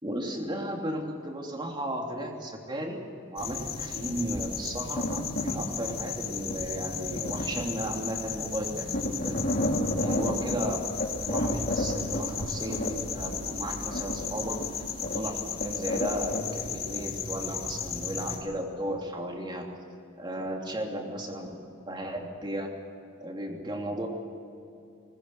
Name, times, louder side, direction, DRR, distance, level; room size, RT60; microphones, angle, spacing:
voice 1, 0.0-3.0 3.3-9.3 10.0-10.8 11.3-19.7 20.2-21.5 21.9-22.7 23.2-24.1, right 1 dB, 20° right, 1 dB, 3.0 m, -35 dB
sound 1, 3.4-18.4, left 3 dB, 50° left, 3.0 m, -32 dB
20.5 x 20.0 x 8.1 m, 2.7 s
head